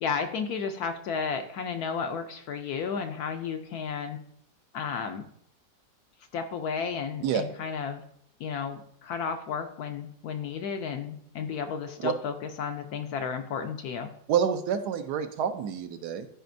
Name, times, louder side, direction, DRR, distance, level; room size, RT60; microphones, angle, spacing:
voice 1, 0.0-4.2 4.7-5.3 6.3-8.0 8.4-14.1, left 6 dB, 70° left, 6 dB, 1.0 m, -33 dB
voice 2, 14.3-16.3, right 8 dB, 70° right, 8 dB, 1.1 m, -28 dB
12.5 x 5.0 x 2.6 m, 0.71 s
omnidirectional pair, 1.9 m